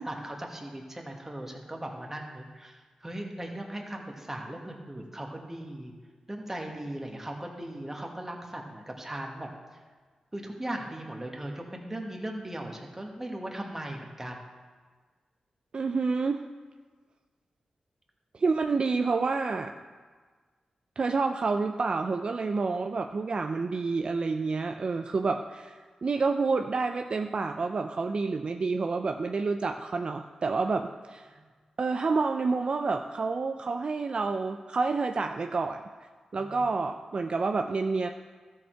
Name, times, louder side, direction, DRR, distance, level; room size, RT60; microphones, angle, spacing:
voice 1, 0.0-5.9 6.3-9.8 10.3-14.4 31.3-31.4 36.4-36.6, right 1 dB, 15° right, 1 dB, 1.6 m, -38 dB
voice 2, 15.7-16.4 18.3-19.7 21.0-31.3 31.8-35.8 36.3-38.1, right 4 dB, 50° right, 5 dB, 0.4 m, -28 dB
13.0 x 6.5 x 4.6 m, 1.5 s
cardioid pair, 70°, 2 cm